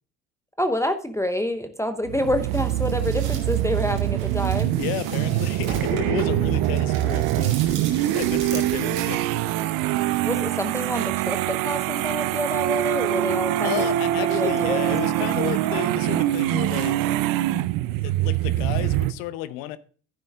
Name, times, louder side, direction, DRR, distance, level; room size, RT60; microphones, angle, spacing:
voice 1, 0.6-4.8 10.2-13.9 14.2-15.3, left 1 dB, 5° left, 0.8 m, -27 dB
sound 1, 2.0-19.1, right 15 dB, 55° right, 0.7 m, -24 dB
sound 2, 2.5-9.1, right 6 dB, 75° right, 2.3 m, -38 dB
voice 2, 4.8-7.6 8.1-9.3 13.6-17.1 18.0-19.8, left 14 dB, 60° left, 0.8 m, -32 dB
12.0 x 10.0 x 2.4 m
hypercardioid pair, 60°, 41 cm